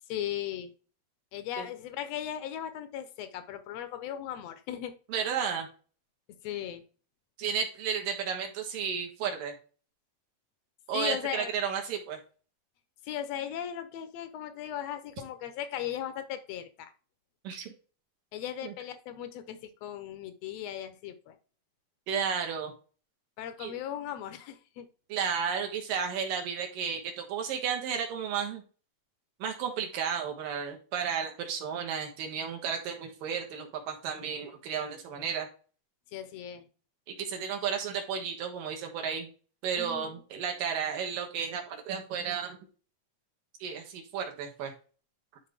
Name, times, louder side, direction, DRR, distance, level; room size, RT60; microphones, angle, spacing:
voice 1, 0.1-0.7 1.3-4.9 6.4-6.8 10.9-11.5 13.0-16.9 18.3-21.4 23.4-24.9 36.1-36.7 39.8-40.2, left 10 dB, 75° left, 9 dB, 1.5 m, -37 dB
voice 2, 5.1-5.7 7.4-9.5 10.9-12.2 17.4-17.7 18.6-18.7 22.1-22.7 23.6-23.7 25.1-28.6 29.4-35.5 37.2-39.3 39.6-42.6 43.6-44.7, right 7 dB, 80° right, 3 dB, 3.2 m, -33 dB
11.5 x 3.9 x 3.5 m, 0.38 s
omnidirectional pair, 3.9 m